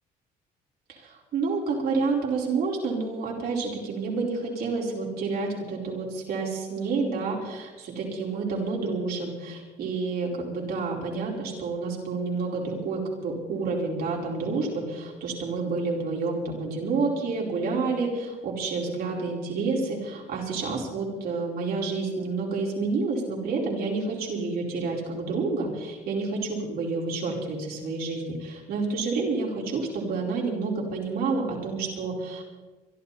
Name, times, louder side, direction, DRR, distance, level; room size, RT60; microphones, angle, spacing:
voice 1, 0.9-32.4, right 4 dB, 65° right, -2 dB, 4.8 m, -29 dB
25.5 x 12.0 x 4.3 m, 1.2 s
cardioid pair, 110°, 17 cm